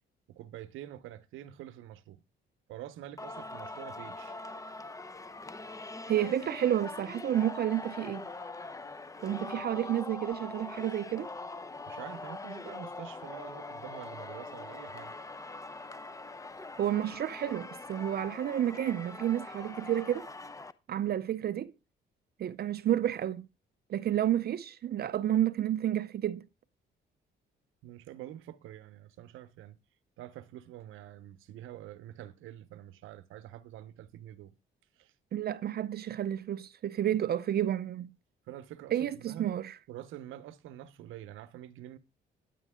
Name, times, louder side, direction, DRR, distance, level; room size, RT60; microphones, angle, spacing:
voice 1, 0.3-2.2 2.7-4.4 11.9-15.1 27.8-29.8 30.2-34.5 35.0-35.1 38.5-39.6 39.9-42.0, right 12 dB, 90° right, 0.9 m, -46 dB
Singing, 3.2-20.7, left 3 dB, 15° left, 0.7 m, -43 dB
voice 2, 6.1-8.3 9.2-11.3 16.8-20.3 20.9-21.7 22.4-23.5 23.9-26.4 35.3-38.1 38.9-39.7, right 11 dB, 50° right, 0.5 m, -30 dB
10.0 x 9.2 x 3.6 m
cardioid pair, 90°, 20 cm